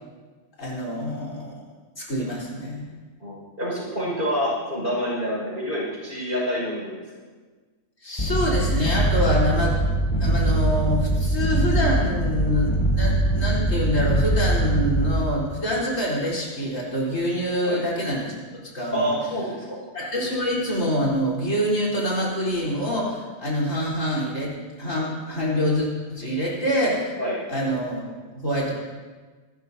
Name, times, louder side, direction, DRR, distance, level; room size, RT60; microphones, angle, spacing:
voice 1, 0.6-1.6 2.0-2.9 8.0-9.8 10.2-18.3 18.7-19.1 19.9-24.5 24.8-27.1 27.5-28.0 28.3-28.7, equal, 60° left, -4 dB, 4.4 m, -25 dB
voice 2, 3.2-7.0 17.6-17.8 18.9-19.8 26.2-26.3 27.2-27.4, equal, 35° right, -4 dB, 5.8 m, -27 dB
sound 1, 8.2-15.3, right 2 dB, 25° left, 1.0 m, -22 dB
26.5 x 13.0 x 2.8 m, 1.4 s
omnidirectional pair, 1.5 m